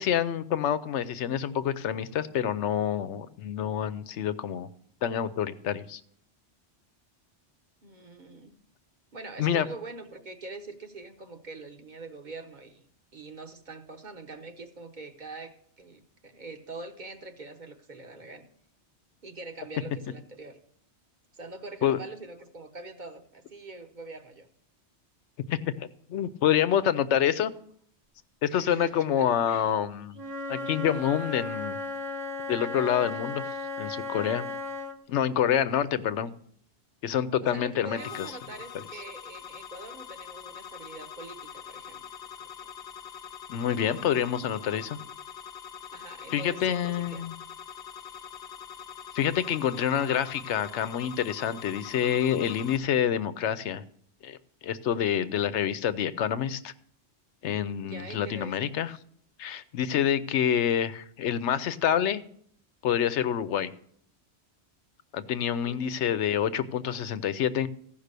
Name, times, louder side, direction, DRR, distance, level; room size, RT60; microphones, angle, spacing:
voice 1, 0.0-4.7 5.0-6.0 9.4-9.7 21.8-22.0 25.5-27.5 28.4-30.2 30.5-31.8 32.5-33.4 33.8-34.4 35.1-36.3 37.0-38.0 38.7-38.8 43.5-45.0 46.3-47.3 49.1-53.8 54.2-54.4 54.6-56.7 57.4-58.9 59.4-62.2 62.8-63.7 65.1-67.7, left 9 dB, 85° left, 13 dB, 1.0 m, -27 dB
voice 2, 7.8-8.5 9.1-12.8 13.1-18.5 19.2-20.6 21.3-24.5 28.5-29.7 37.4-42.0 45.9-47.3 48.0-48.2 57.8-58.7 65.6-66.1, right 3 dB, 45° right, 6 dB, 1.1 m, -44 dB
Wind instrument woodwind instrument, 30.1-35.0, left 2 dB, 25° right, 0.8 m, -35 dB
sound 1, 38.0-52.8, left 8 dB, 60° left, 1.1 m, -44 dB
15.0 x 5.5 x 6.6 m, 0.62 s
omnidirectional pair, 1.1 m